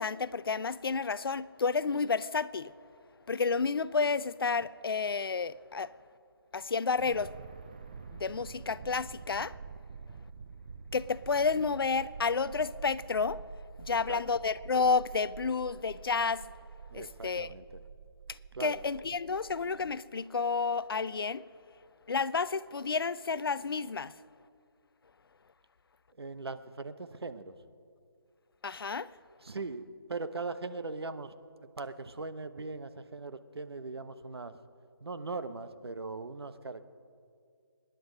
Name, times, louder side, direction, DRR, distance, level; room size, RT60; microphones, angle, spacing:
voice 1, 0.0-2.7 3.3-5.9 6.5-7.3 8.1-9.6 10.9-13.4 13.8-16.5 16.9-17.5 18.3-21.4 22.1-24.1 28.6-29.1, left 5 dB, 65° left, 0.6 m, -31 dB
sound 1, 7.0-20.0, right 5 dB, 20° right, 0.4 m, -48 dB
voice 2, 13.9-14.2 16.9-17.8 18.5-18.8 26.2-27.5 29.4-31.3 31.8-34.5 35.0-36.8, right 3 dB, 75° right, 1.1 m, -40 dB
25.5 x 10.5 x 5.3 m
figure-of-eight pair, 160°, 13 cm